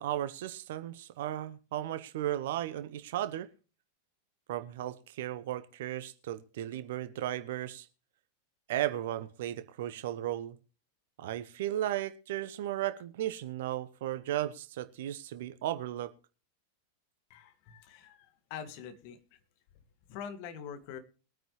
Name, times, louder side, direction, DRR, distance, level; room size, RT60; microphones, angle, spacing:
voice 1, 0.0-3.5 4.5-7.9 8.7-10.6 11.2-16.1, right 13 dB, 55° right, 13 dB, 1.0 m, -35 dB
voice 2, 17.3-19.4 20.1-21.0, left 7 dB, 45° left, 9 dB, 1.8 m, -44 dB
21.5 x 9.2 x 3.2 m, 0.36 s
figure-of-eight pair, 90°, 0 cm